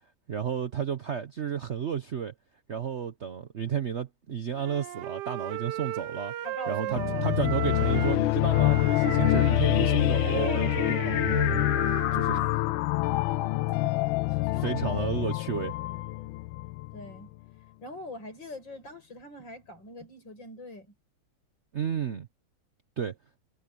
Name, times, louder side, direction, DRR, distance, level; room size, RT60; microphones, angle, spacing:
voice 1, 0.3-2.3 2.7-6.3 6.7-12.6 14.3-15.7 21.7-22.3 23.0-23.2, right 8 dB, 50° right, 0.8 m, -32 dB
Wind instrument woodwind instrument, 4.5-8.2 8.5-12.5, right 14 dB, 70° right, 1.1 m, -36 dB
voice 2, 6.4-7.4 14.4-15.1 16.9-17.3 17.8-20.9, left 1 dB, 65° left, 7.1 m, -42 dB
sound 1, 6.9-17.2, left 18 dB, 80° left, 1.4 m, -26 dB
omnidirectional pair, 2.2 m